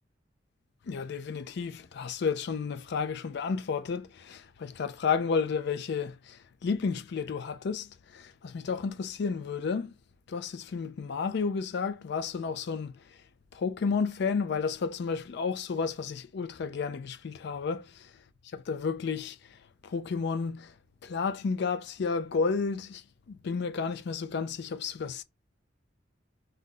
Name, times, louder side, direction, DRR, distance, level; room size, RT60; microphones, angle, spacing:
voice 1, 0.9-9.9 10.3-12.9 13.5-18.1 18.5-19.6 19.8-20.7 21.0-23.0 23.3-25.2, left 5 dB, 60° left, 0.4 m, -32 dB
2.7 x 2.4 x 3.7 m
head